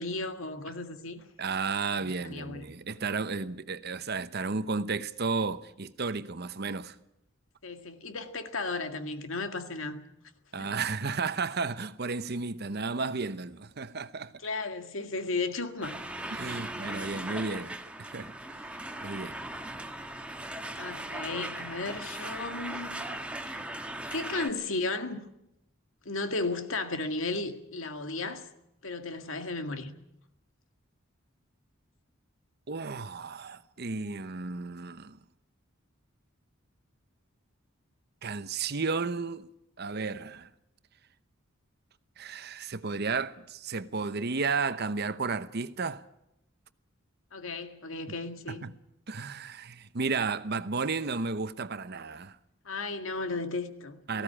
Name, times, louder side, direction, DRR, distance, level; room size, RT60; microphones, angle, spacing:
voice 1, 0.0-1.2 1.9-2.6 7.6-10.0 10.6-10.8 14.4-16.7 20.8-23.2 23.5-23.6 24.1-25.2 26.1-28.5 28.8-29.9 47.3-48.6 52.7-54.2, left 3 dB, 75° left, 1.9 m, -35 dB
voice 2, 1.4-7.0 10.5-14.3 16.3-18.3 19.0-19.4 32.7-35.2 38.2-39.5 39.8-40.5 42.2-46.0 48.5-48.7 49.1-52.4 54.1-54.2, right 4 dB, 50° right, 0.9 m, -33 dB
sound 1, 15.8-24.5, right 1 dB, 5° right, 1.3 m, -38 dB
18.5 x 16.0 x 10.0 m
head